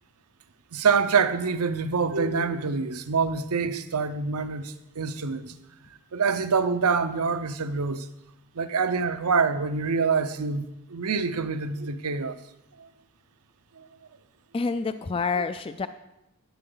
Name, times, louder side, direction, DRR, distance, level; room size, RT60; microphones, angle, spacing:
voice 1, 0.7-5.5 6.1-8.1 8.5-12.4 12.8-12.9 13.8-13.9 15.4-15.5, right 5 dB, 90° right, 0.7 m, -26 dB
voice 2, 14.5-15.9, left 4 dB, 25° left, 0.3 m, -28 dB
11.5 x 10.0 x 3.9 m
head